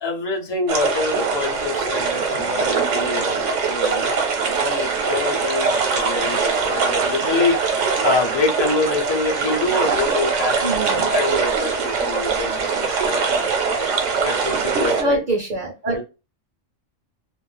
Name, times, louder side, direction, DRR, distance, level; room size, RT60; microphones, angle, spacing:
voice 1, 0.0-4.1 4.6-10.6 10.9-13.9 14.2-15.2 15.9-16.0, left 3 dB, 25° left, 0 dB, 0.6 m, -26 dB
sound 1, 0.7-15.0, right 5 dB, 70° right, 1.0 m, -22 dB
voice 2, 10.6-11.0 15.0-16.0, right 1 dB, 50° right, 0 dB, 0.7 m, -24 dB
2.5 x 2.0 x 3.3 m, 0.29 s
omnidirectional pair, 1.3 m